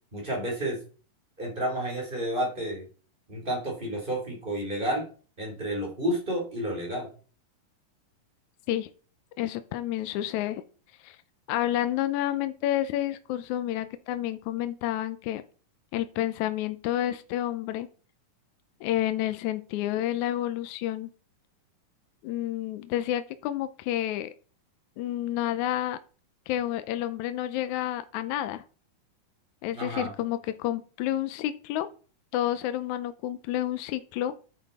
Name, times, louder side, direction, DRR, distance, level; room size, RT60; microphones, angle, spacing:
voice 1, 0.1-0.8 1.4-2.9 3.3-5.1 5.4-7.1 29.7-30.1, right 1 dB, 15° right, 0 dB, 3.8 m, -30 dB
voice 2, 9.4-10.6 11.0-11.2 11.5-15.4 15.9-17.9 18.8-21.1 22.2-24.3 25.0-26.0 26.5-28.6 29.6-31.9 32.3-34.3, left 13 dB, 75° left, 11 dB, 1.8 m, -29 dB
9.2 x 9.2 x 4.2 m, 0.38 s
omnidirectional pair, 3.9 m